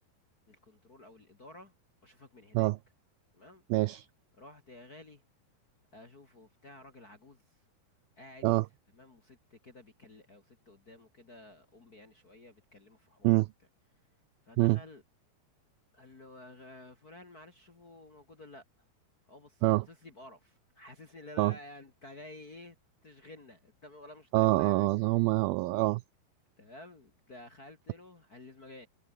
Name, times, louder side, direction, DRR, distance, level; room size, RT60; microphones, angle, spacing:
voice 1, 0.5-1.7 2.0-2.7 3.3-3.6 4.4-5.2 5.9-7.6 8.2-8.5 8.9-13.5 14.4-15.0 15.9-18.6 19.3-22.8 23.0-24.9 26.6-28.9, left 2 dB, 35° left, 1.7 m, -52 dB
voice 2, 3.7-4.1 8.4-8.6 13.2-13.5 14.6-14.8 19.6-19.8 21.4-21.5 24.3-26.0, right 20 dB, 85° right, 2.1 m, -25 dB
omnidirectional pair, 4.8 m